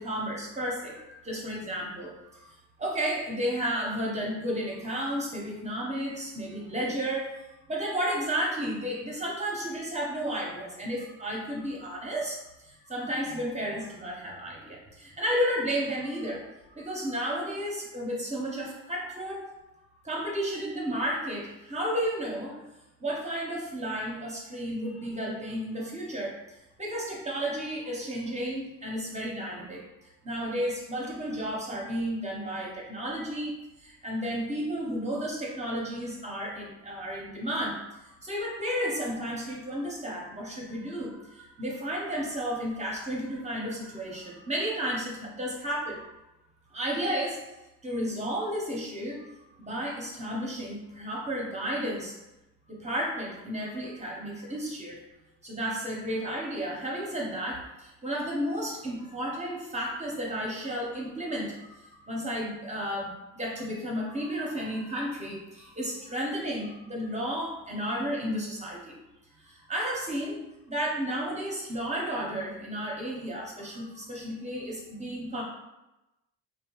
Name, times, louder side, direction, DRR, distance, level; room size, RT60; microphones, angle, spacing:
voice 1, 0.0-7.3 7.7-19.5 20.0-22.6 23.0-29.9 30.2-33.5 33.8-46.1 46.7-47.4 47.8-49.3 49.6-52.2 52.7-55.0 55.4-69.0 69.4-70.4 70.7-75.4, equal, 25° right, -2 dB, 0.7 m, -33 dB
2.8 x 2.0 x 2.9 m, 0.96 s
cardioid pair, 90°, 30 cm